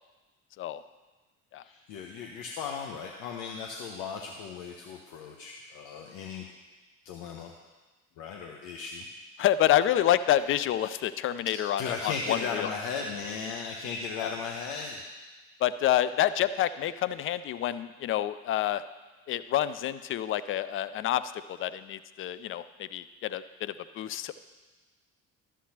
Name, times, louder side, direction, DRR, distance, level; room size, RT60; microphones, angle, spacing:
voice 1, 1.6-6.5 7.0-7.5 8.2-9.0 11.8-15.0, left 5 dB, 60° left, 1 dB, 0.9 m, -36 dB
voice 2, 9.4-12.7 14.2-14.3 15.6-18.8 19.3-24.3, left 12 dB, 35° left, 14 dB, 0.4 m, -28 dB
12.5 x 7.4 x 2.9 m, 1.2 s
figure-of-eight pair, 50°, 40 cm